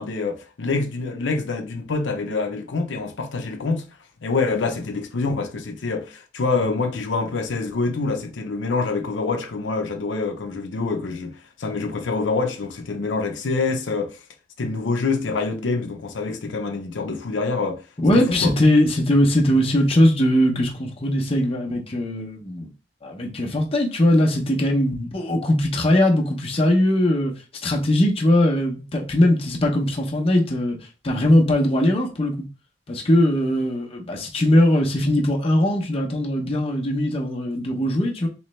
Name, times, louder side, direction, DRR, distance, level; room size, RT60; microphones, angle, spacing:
voice 1, 0.0-3.9 4.2-14.2 14.6-17.8 18.1-18.5, left 3 dB, 85° left, 0.6 m, -26 dB
voice 2, 18.0-22.7 23.0-27.3 27.6-30.8 31.0-32.3 32.9-38.3, left 1 dB, 30° left, 0.8 m, -20 dB
3.2 x 3.1 x 3.1 m
head